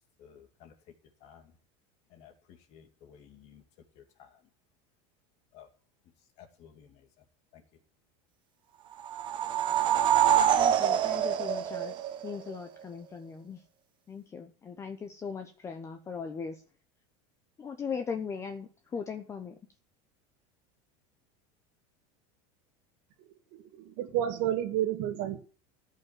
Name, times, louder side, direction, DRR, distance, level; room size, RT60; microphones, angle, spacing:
voice 1, 0.2-0.7 1.2-1.5 2.1-3.6 4.0-4.4 5.5-5.7 6.4-7.1 7.5-7.6, left 8 dB, 45° left, 5 dB, 2.4 m, -55 dB
sound 1, 9.0-12.6, right 10 dB, 30° right, 1.2 m, -25 dB
voice 2, 10.6-13.6 14.1-16.6 17.6-19.6, left 6 dB, 20° left, 7 dB, 0.9 m, -39 dB
voice 3, 23.5-25.4, right 11 dB, 55° right, 8 dB, 2.4 m, -30 dB
15.0 x 5.7 x 7.3 m, 0.40 s
supercardioid pair, 155°, 15 cm